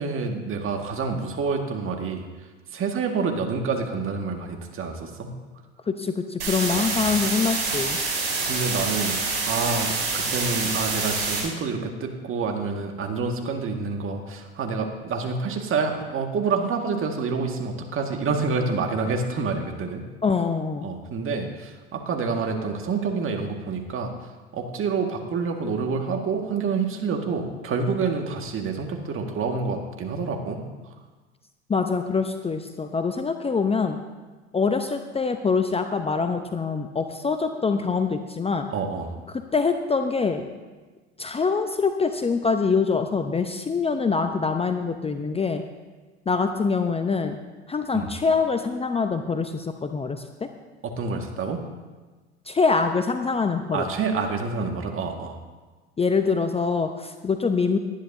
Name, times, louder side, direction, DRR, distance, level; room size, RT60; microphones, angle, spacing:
voice 1, 0.0-2.3 2.7-5.3 6.7-6.9 8.5-9.2 9.4-20.0 20.8-24.1 24.5-30.6 38.7-39.1 47.9-48.1 51.0-51.6 53.7-55.4, right 4 dB, 40° right, 3 dB, 1.9 m, -27 dB
voice 2, 5.9-8.0 20.2-20.9 31.7-34.0 34.5-38.7 39.3-40.4 41.2-45.6 46.3-47.4 47.7-50.5 52.5-53.9 56.0-57.8, left 4 dB, 15° left, 7 dB, 0.8 m, -24 dB
sound 1, 6.4-11.4, right 3 dB, 85° right, 4.4 m, -26 dB
19.5 x 10.0 x 2.7 m, 1.3 s
hypercardioid pair, 70°, 34 cm